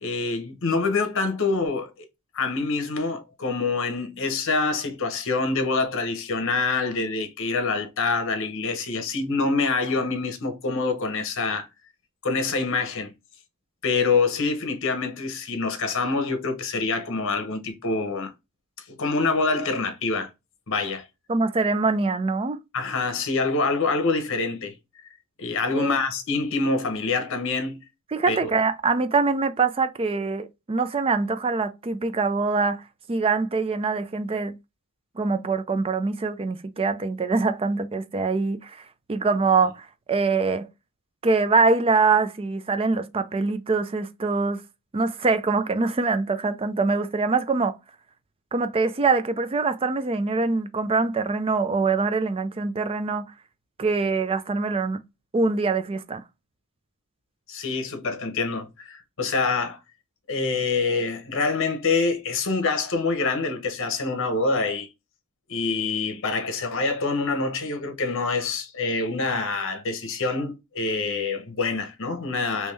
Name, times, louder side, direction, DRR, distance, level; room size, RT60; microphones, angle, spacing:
voice 1, 0.0-2.1 2.3-11.7 12.2-13.1 13.8-18.3 18.9-20.3 20.7-21.1 22.7-24.7 25.4-27.8 28.3-28.5 57.5-59.8 60.3-64.9 65.5-72.7, left 3 dB, 60° left, 0.9 m, -26 dB
voice 2, 21.3-22.6 25.7-26.0 28.1-32.8 33.1-34.6 35.2-40.7 41.2-44.6 44.9-47.8 48.5-53.3 53.8-55.0 55.3-56.2, right 4 dB, 25° right, 0.4 m, -24 dB
3.5 x 3.1 x 3.2 m
head